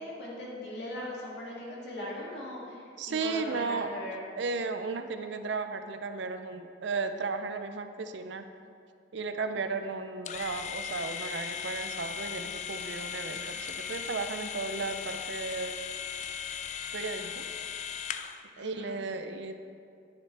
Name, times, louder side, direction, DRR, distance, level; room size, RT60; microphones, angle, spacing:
voice 1, 0.0-4.3 9.5-9.8 18.6-18.9, left 1 dB, 65° left, -5 dB, 2.4 m, -39 dB
voice 2, 3.0-4.0 4.4-8.5 9.1-15.7 16.9-17.5 18.6-19.6, right 4 dB, 70° right, 8 dB, 0.5 m, -35 dB
sound 1, 10.3-18.4, left 8 dB, 40° left, 0.3 m, -38 dB
10.0 x 9.7 x 3.4 m, 2.4 s
head